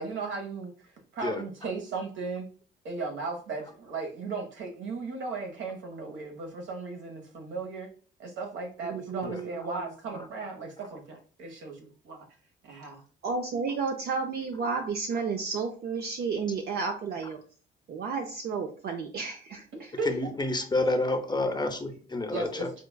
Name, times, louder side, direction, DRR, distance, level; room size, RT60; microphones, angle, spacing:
voice 1, 0.0-2.5 2.8-7.9 8.2-12.3 12.6-13.0 19.7-20.3 22.3-22.7, right 4 dB, 75° right, 3 dB, 1.0 m, -36 dB
voice 2, 8.8-9.5 13.2-17.4 17.9-19.6, right 5 dB, 55° right, 3 dB, 0.5 m, -32 dB
voice 3, 20.0-22.7, left 2 dB, 20° left, 5 dB, 0.6 m, -29 dB
5.1 x 2.3 x 2.2 m, 0.41 s
cardioid pair, 90°, 20 cm